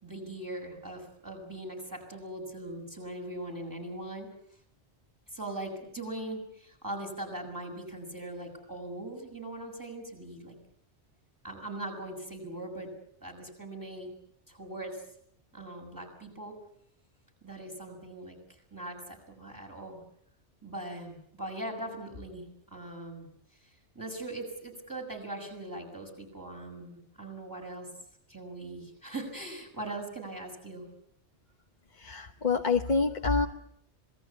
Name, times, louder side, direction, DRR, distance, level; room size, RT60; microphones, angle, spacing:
voice 1, 0.0-4.3 5.3-10.6 11.4-12.9 13.2-14.1 14.5-15.0 15.5-16.6 17.4-18.4 18.7-20.0 20.6-23.3 23.9-27.9 28.3-30.9, right 1 dB, 15° right, 1 dB, 6.5 m, -40 dB
voice 2, 31.9-33.5, left 4 dB, 40° left, 3 dB, 1.2 m, -27 dB
26.5 x 19.5 x 8.3 m, 0.69 s
omnidirectional pair, 1.2 m